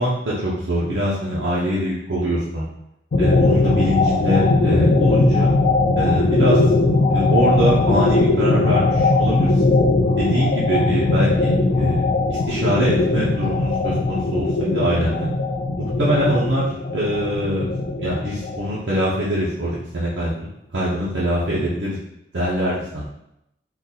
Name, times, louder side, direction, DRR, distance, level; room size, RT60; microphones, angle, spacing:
voice 1, 0.0-2.7 3.2-5.5 6.0-6.6 7.1-9.8 10.2-12.0 12.3-15.3 15.8-16.6 16.9-17.7 18.0-22.0 22.3-23.1, equal, 80° right, -7 dB, 0.7 m, -23 dB
sound 1, 3.1-19.2, left 3 dB, 50° left, 0.3 m, -19 dB
3.8 x 2.5 x 2.8 m, 0.83 s
head